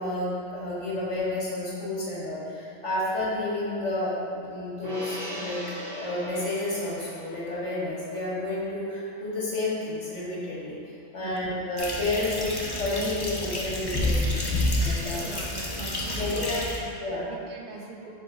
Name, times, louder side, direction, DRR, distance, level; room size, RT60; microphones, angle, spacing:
voice 1, 0.0-5.6 5.9-10.7 11.1-14.5 14.8-15.3 16.1-16.6 17.0-17.3, left 2 dB, 70° left, -7 dB, 2.0 m, -30 dB
Gong, 4.8-11.4 11.8-11.9, equal, 85° right, 1.6 m, -42 dB
voice 2, 11.2-11.7 15.2-16.9 17.3-18.1, right 4 dB, 55° right, 0 dB, 0.5 m, -42 dB
sound 1, 11.8-16.8, left 1 dB, 25° left, 0.6 m, -29 dB
4.7 x 4.1 x 5.5 m, 2.6 s
omnidirectional pair, 1.3 m